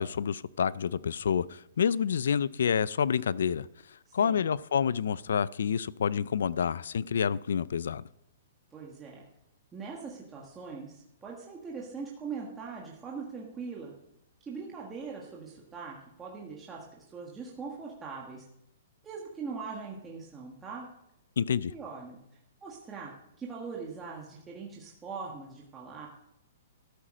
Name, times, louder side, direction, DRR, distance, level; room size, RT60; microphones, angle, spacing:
voice 1, 0.0-3.7 4.1-8.0 21.4-21.7, left 7 dB, 75° left, 0.5 m, -28 dB
voice 2, 4.1-4.4 8.7-9.2 9.7-13.9 14.4-18.4 19.0-20.9 21.7-22.2 22.6-26.1, right 5 dB, 10° right, 1.5 m, -41 dB
13.0 x 9.0 x 6.3 m
hypercardioid pair, 175°, 0 cm